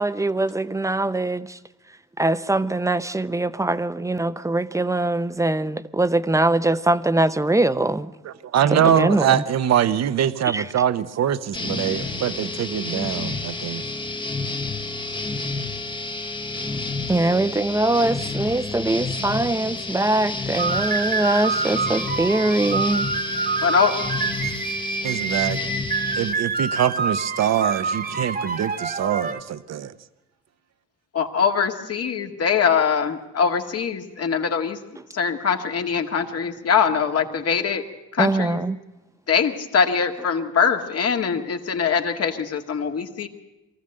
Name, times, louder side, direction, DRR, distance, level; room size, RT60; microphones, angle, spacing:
voice 1, 0.0-1.6 2.2-8.1 8.7-9.4 10.4-10.6 17.1-23.5 35.0-35.1 38.2-38.8, right 2 dB, 10° right, 0.7 m, -22 dB
voice 2, 8.2-13.8 25.0-25.6 26.1-29.9, right 10 dB, 60° right, 1.0 m, -23 dB
sound 1, 11.5-26.3, left 3 dB, 15° left, 1.1 m, -30 dB
sound 2, 20.5-29.4, right 4 dB, 30° right, 1.4 m, -27 dB
voice 3, 23.6-23.9 31.1-34.8 35.1-37.8 38.2-38.6 39.3-43.3, left 6 dB, 55° left, 1.9 m, -22 dB
23.0 x 14.5 x 7.8 m
cardioid pair, 90°, 30 cm